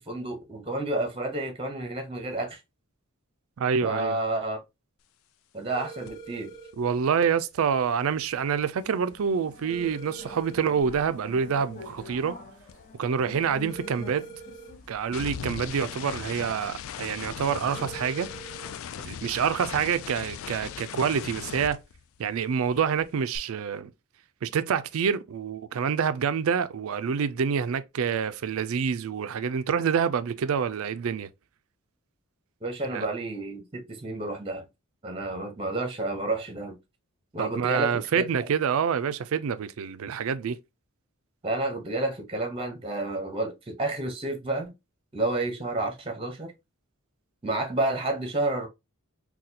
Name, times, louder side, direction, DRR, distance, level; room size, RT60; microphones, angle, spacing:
voice 1, 0.1-2.6 3.8-4.6 5.5-6.5 32.6-34.6 35.0-36.8 37.3-38.2 41.4-44.7 45.1-46.5 47.4-48.7, right 2 dB, 25° right, 0.8 m, -30 dB
voice 2, 3.6-4.2 6.8-12.4 13.0-14.3 14.9-18.3 19.0-21.8 22.2-23.9 24.4-31.3 32.9-33.1 37.4-40.6, right 7 dB, 65° right, 0.4 m, -27 dB
sound 1, 5.7-6.7 9.7-10.7 13.7-14.7 17.7-18.7, right 4 dB, 20° left, 1.2 m, -43 dB
sound 2, 6.1-6.3 6.5-10.9 11.2-22.5 22.7-23.4, left 8 dB, 65° left, 0.3 m, -41 dB
sound 3, 8.6-17.3, left 3 dB, 35° left, 0.9 m, -47 dB
4.0 x 2.3 x 2.7 m
head